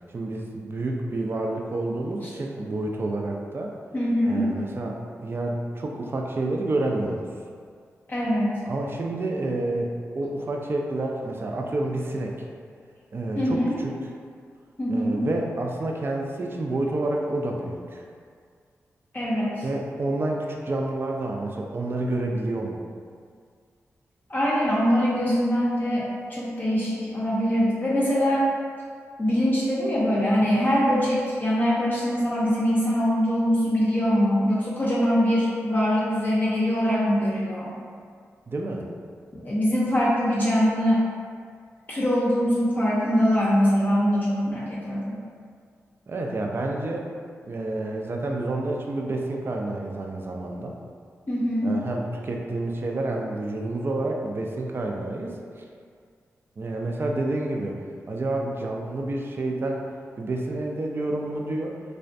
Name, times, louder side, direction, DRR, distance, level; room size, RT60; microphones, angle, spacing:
voice 1, 0.1-3.7 4.3-7.3 8.7-12.5 13.1-13.9 14.9-18.0 19.6-22.8 38.5-38.9 46.1-47.1 47.5-50.7 51.6-55.6 56.6-57.8 58.1-59.8 60.2-61.8, right 2 dB, 45° right, 0 dB, 0.3 m, -29 dB
voice 2, 3.9-4.5 8.1-8.6 13.3-13.7 14.8-15.2 19.1-19.6 24.3-28.5 29.2-37.7 39.3-41.0 41.9-45.1 51.3-51.7, equal, 35° left, -7 dB, 0.5 m, -23 dB
2.4 x 2.1 x 2.5 m, 2.1 s
cardioid pair, 50°, 6 cm